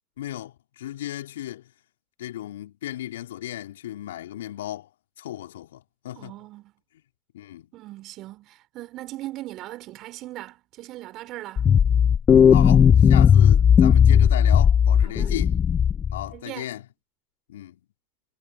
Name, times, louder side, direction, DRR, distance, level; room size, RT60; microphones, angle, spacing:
voice 1, 0.2-1.7 2.2-4.9 5.2-6.3 7.3-7.7 12.5-15.6 16.1-16.9 17.5-17.8, left 13 dB, 75° left, 4.2 m, -35 dB
voice 2, 6.2-6.7 7.7-11.6 15.0-15.4 16.3-16.7, right 16 dB, 50° right, 5.5 m, -39 dB
sound 1, 11.6-16.2, left 8 dB, 35° left, 1.1 m, -16 dB
hypercardioid pair, 80°, 0 cm